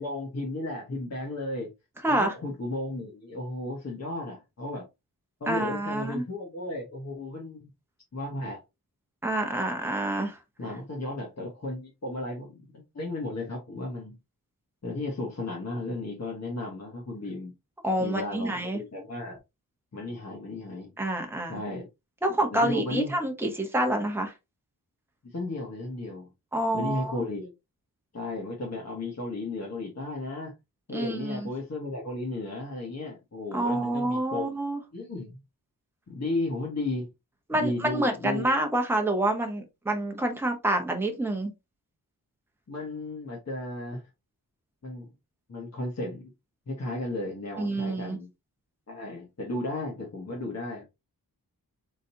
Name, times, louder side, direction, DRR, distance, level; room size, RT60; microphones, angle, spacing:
voice 1, 0.0-1.7 2.1-4.8 5.4-7.7 8.1-8.6 10.6-14.2 14.8-17.5 18.0-19.4 19.9-20.9 21.5-21.9 22.5-23.2 25.2-26.3 26.7-27.5 28.1-30.5 30.9-34.4 34.9-35.4 36.1-37.1 37.5-38.5 42.7-44.0 44.8-45.1 45.5-46.3 46.7-48.3 48.9-50.8, left 2 dB, 45° left, 1.5 m, -34 dB
voice 2, 2.0-2.3 5.5-6.2 9.2-10.4 17.8-18.8 21.0-21.6 22.2-24.3 26.5-27.2 30.9-31.5 33.5-34.8 37.5-41.5 47.6-48.2, right 1 dB, 5° right, 1.0 m, -27 dB
4.0 x 3.9 x 2.8 m
wide cardioid pair, 125°, 36 cm